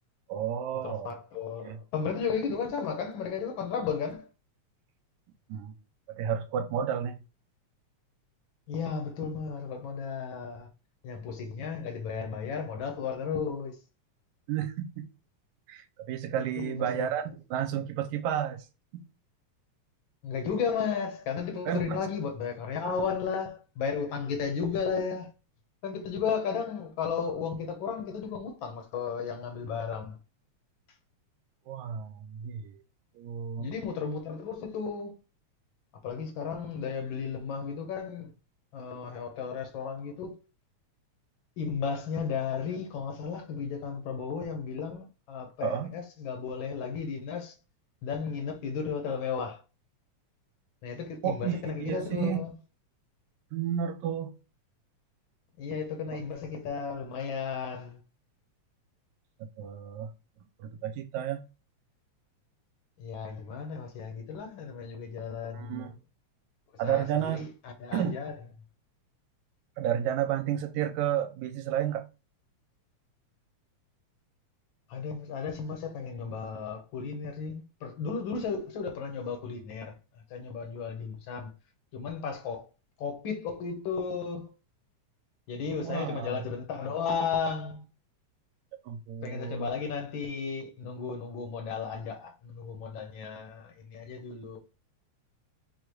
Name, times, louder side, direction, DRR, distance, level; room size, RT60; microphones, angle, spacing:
voice 1, 0.3-1.2 1.6-1.8 2.5-2.6 5.5-5.8 6.1-7.2 11.6-11.7 14.5-15.1 15.7-18.7 18.9-19.0 21.7-22.0 31.7-32.8 33.2-33.7 45.6-45.9 51.2-52.4 53.5-54.3 59.6-60.1 60.6-61.5 65.5-65.9 66.8-67.5 67.9-68.2 69.8-72.1 85.8-86.4 88.9-89.7, right 9 dB, 90° right, 2.0 m, -32 dB
voice 2, 0.8-4.3 8.7-10.7 11.0-13.8 16.6-17.1 20.2-25.3 25.8-30.2 33.6-35.2 36.0-38.3 38.7-40.3 41.6-47.5 48.0-49.6 50.8-52.5 55.6-58.0 63.0-65.9 66.8-68.3 74.9-79.9 80.3-81.5 81.9-82.7 83.0-84.5 85.5-87.8 89.2-94.6, left 6 dB, 65° left, 1.2 m, -34 dB
4.9 x 2.3 x 4.6 m
omnidirectional pair, 3.3 m